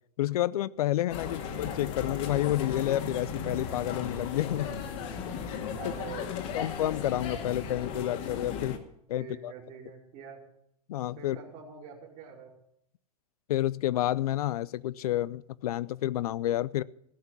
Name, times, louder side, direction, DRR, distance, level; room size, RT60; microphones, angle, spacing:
voice 1, 0.2-4.7 5.5-5.6 6.3-8.8 9.1-9.5 10.9-11.4 13.5-16.8, left 14 dB, 70° left, 21 dB, 0.5 m, -30 dB
sound 1, 1.1-8.8, left 6 dB, 50° left, 2.1 m, -36 dB
voice 2, 5.7-6.6 9.2-10.4 11.2-12.5, right 7 dB, 45° right, -4 dB, 2.8 m, -45 dB
15.5 x 5.9 x 9.9 m, 0.75 s
hypercardioid pair, 110°, 20 cm